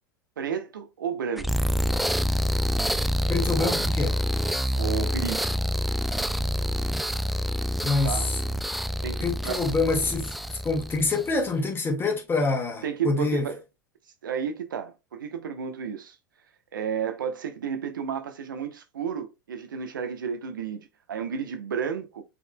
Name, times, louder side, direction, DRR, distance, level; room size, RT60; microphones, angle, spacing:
voice 1, 0.4-1.5 3.6-3.8 4.7-5.5 8.0-8.3 9.0-9.6 12.8-13.6 14.2-16.2 16.7-22.2, right 7 dB, 85° right, 0.9 m, -32 dB
sound 1, 1.4-11.4, equal, ahead, 0.3 m, -27 dB
voice 2, 3.3-4.2 7.8-8.4 9.2-13.5, left 3 dB, 20° left, 1.7 m, -26 dB
5.7 x 4.1 x 2.2 m
hypercardioid pair, 100°, 11 cm